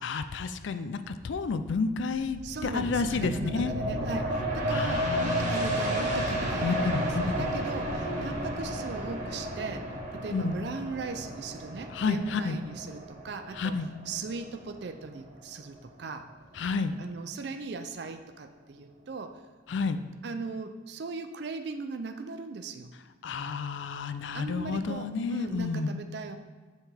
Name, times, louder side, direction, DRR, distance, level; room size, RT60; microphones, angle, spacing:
voice 1, 0.0-3.7 4.7-5.8 6.6-7.2 10.3-10.6 11.9-12.6 13.5-13.9 16.5-17.0 19.7-20.0 23.2-25.9, left 4 dB, 70° left, 11 dB, 0.4 m, -30 dB
sound 1, 2.1-15.4 15.8-15.9, equal, 40° right, 1.4 m, -32 dB
voice 2, 2.4-9.9 10.1-13.8 14.1-16.3 17.0-19.4 20.2-22.9 24.3-26.4, right 4 dB, 55° right, 7 dB, 0.4 m, -38 dB
7.2 x 5.6 x 3.4 m, 1.4 s
head